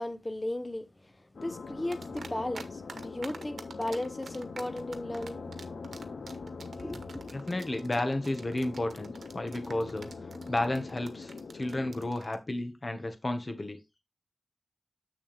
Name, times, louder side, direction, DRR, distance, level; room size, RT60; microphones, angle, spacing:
voice 1, 0.0-5.5 6.8-7.1, left 1 dB, 25° left, 1.0 m, -36 dB
sound 1, 1.3-12.1, left 4 dB, 85° left, 0.8 m, -43 dB
sound 2, 1.9-2.6 2.9-12.4, right 4 dB, 90° right, 1.1 m, -46 dB
voice 2, 7.3-10.1 10.5-13.8, left 1 dB, 40° left, 1.6 m, -32 dB
7.4 x 6.6 x 3.5 m
wide cardioid pair, 70°, 0 cm